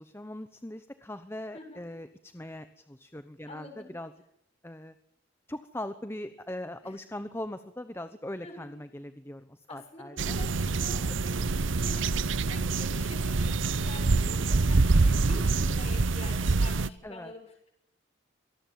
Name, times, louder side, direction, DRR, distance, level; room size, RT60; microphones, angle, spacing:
voice 1, 0.0-4.1 4.6-4.9 5.5-10.4 17.0-17.3, left 1 dB, 10° left, 10 dB, 0.9 m, -40 dB
voice 2, 3.5-3.9 6.8-6.9 8.4-8.7 9.7-11.4 11.8-17.7, left 2 dB, 35° left, 4 dB, 7.0 m, -46 dB
sound 1, 10.2-16.9, right 3 dB, 85° right, 0.8 m, -26 dB
25.0 x 19.0 x 7.5 m, 0.73 s
head